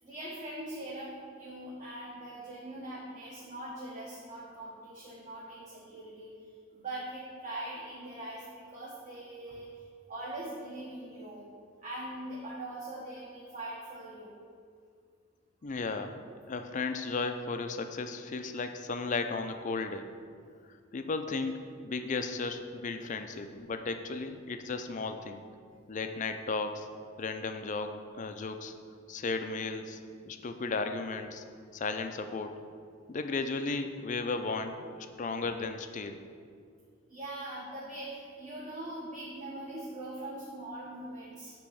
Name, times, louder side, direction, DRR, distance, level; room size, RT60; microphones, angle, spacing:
voice 1, 0.0-6.3 6.7-9.7 10.1-11.5 11.8-14.3 37.1-41.5, right 1 dB, 35° right, -6 dB, 1.2 m, -42 dB
voice 2, 15.6-20.1 20.9-25.4 25.9-26.9 27.2-28.7 29.1-30.0 30.3-31.4 31.7-32.5 33.1-36.2, left 3 dB, 40° left, 7 dB, 0.4 m, -35 dB
8.5 x 3.0 x 6.3 m, 2.2 s
head